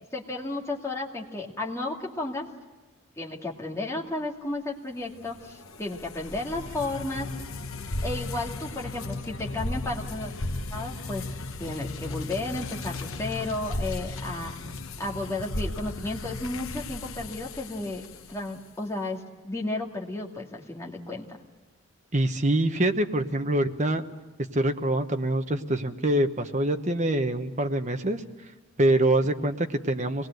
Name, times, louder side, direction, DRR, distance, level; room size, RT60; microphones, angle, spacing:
voice 1, 0.1-2.5 3.2-7.3 8.0-10.3 10.7-11.2 11.6-14.5 15.0-21.2, left 2 dB, 15° left, -2 dB, 2.4 m, -33 dB
sound 1, 5.2-18.6, left 2 dB, 75° left, 1.2 m, -35 dB
voice 2, 22.1-24.0 24.5-28.2 28.8-30.3, right 1 dB, 35° right, 6 dB, 1.2 m, -25 dB
25.0 x 20.0 x 7.9 m, 1.2 s
head